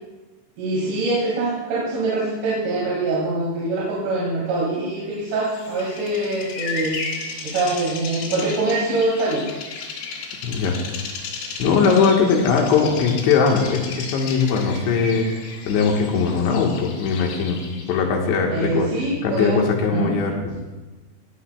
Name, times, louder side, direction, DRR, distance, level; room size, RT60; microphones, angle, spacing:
voice 1, 0.6-7.0 7.4-9.4 18.5-19.7 19.9-20.2, right 2 dB, 75° right, -5 dB, 4.7 m, -24 dB
Bird vocalization bird call bird song, 5.3-18.0, left 4 dB, 90° left, 4.4 m, -34 dB
voice 2, 10.4-10.8 11.6-15.3 15.7-17.6 17.9-18.9 19.2-20.4, left 5 dB, 70° left, 1 dB, 3.5 m, -20 dB
18.0 x 16.5 x 2.3 m, 1.2 s
omnidirectional pair, 5.7 m